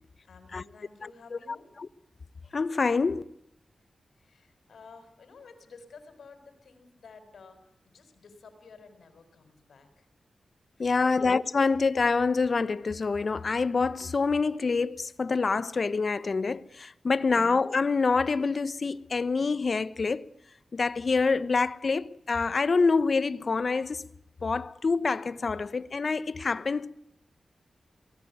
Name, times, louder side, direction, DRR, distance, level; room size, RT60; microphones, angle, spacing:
voice 1, 0.2-1.7 4.2-10.1 10.8-11.3 17.1-17.5, left 4 dB, 80° left, 5.8 m, -53 dB
voice 2, 2.5-3.2 10.8-20.3 20.7-24.0 24.4-26.9, left 4 dB, 60° left, 1.1 m, -26 dB
23.5 x 19.0 x 9.8 m
cardioid pair, 40°, 0 cm